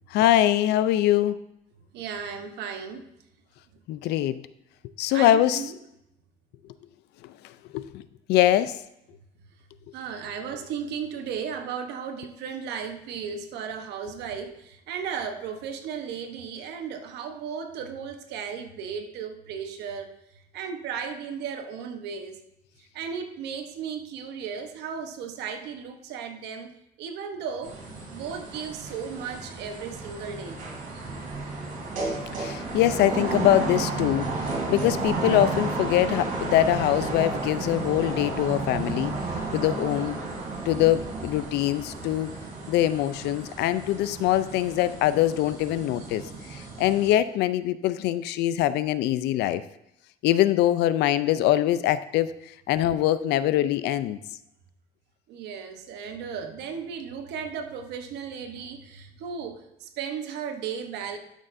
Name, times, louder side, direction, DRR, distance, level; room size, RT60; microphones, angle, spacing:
voice 1, 0.1-1.4 3.9-4.4 5.0-5.6 7.7-8.0 8.3-8.7 32.4-39.1 39.5-40.2 40.7-42.3 42.7-46.2 46.5-49.6 50.2-52.3 52.7-54.2, left 13 dB, 80° left, 14 dB, 0.5 m, -23 dB
voice 2, 1.9-3.1 5.1-5.8 9.9-20.1 20.5-22.4 22.9-26.7 27.0-27.8 28.1-30.6 55.3-61.2, right 7 dB, 85° right, 6 dB, 1.0 m, -35 dB
sound 1, 27.6-47.1, right 3 dB, 55° right, 3.1 m, -32 dB
12.5 x 6.4 x 2.6 m, 0.82 s
cardioid pair, 110°, 17 cm